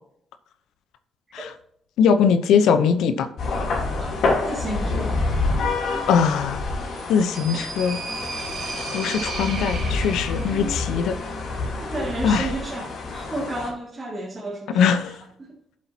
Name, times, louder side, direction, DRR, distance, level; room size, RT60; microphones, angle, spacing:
voice 1, 2.0-3.3 6.1-6.6 7.1-8.0 8.9-11.1 12.2-12.5 14.7-15.2, left 6 dB, 85° left, 9 dB, 0.8 m, -20 dB
sound 1, 3.4-13.7, left 3 dB, 65° left, 3.1 m, -27 dB
voice 2, 4.0-5.4 11.8-15.6, right 2 dB, 25° right, -4 dB, 2.3 m, -33 dB
sound 2, 6.9-10.7, right 4 dB, 70° right, 3.5 m, -34 dB
10.0 x 7.6 x 2.9 m, 0.70 s
cardioid pair, 90°, 0 cm